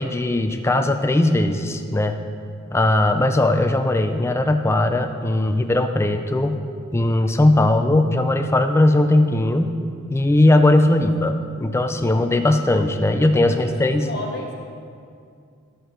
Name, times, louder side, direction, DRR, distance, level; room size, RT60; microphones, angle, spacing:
voice 1, 0.0-2.2 2.7-6.6 6.9-9.7 10.1-14.1, left 1 dB, 10° left, 7 dB, 0.4 m, -19 dB
voice 2, 13.5-14.5, left 2 dB, 50° left, -1 dB, 1.3 m, -34 dB
11.0 x 7.8 x 3.8 m, 2.3 s
head